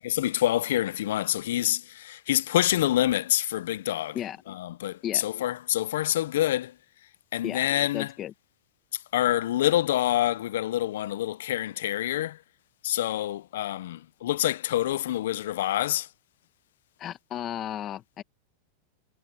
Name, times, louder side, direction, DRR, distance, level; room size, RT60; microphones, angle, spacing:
voice 1, 0.0-4.2 4.6-6.7 7.3-8.1 9.1-12.4 12.8-16.1, left 13 dB, 75° left, 0.4 m, -26 dB
voice 2, 7.9-8.3 17.0-18.2, left 11 dB, 30° left, 1.1 m, -34 dB
supercardioid pair, 155°, 0 cm